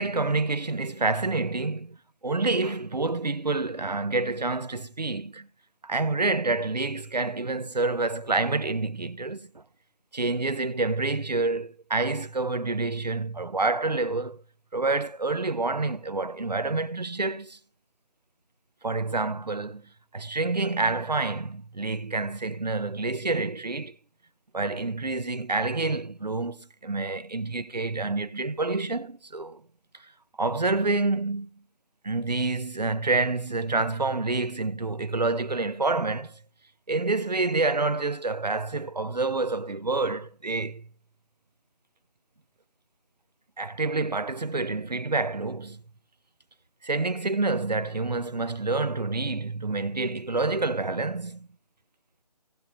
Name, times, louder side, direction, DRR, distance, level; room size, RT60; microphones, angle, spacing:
voice 1, 0.0-2.0 2.2-5.5 5.8-9.6 10.1-14.4 14.7-17.6 18.8-24.0 24.5-29.6 30.4-31.5 32.0-36.4 36.9-40.8 43.6-45.8 46.8-51.5, right 3 dB, 85° right, 1.1 m, -28 dB
17.5 x 7.1 x 3.2 m
figure-of-eight pair, 155°, 21 cm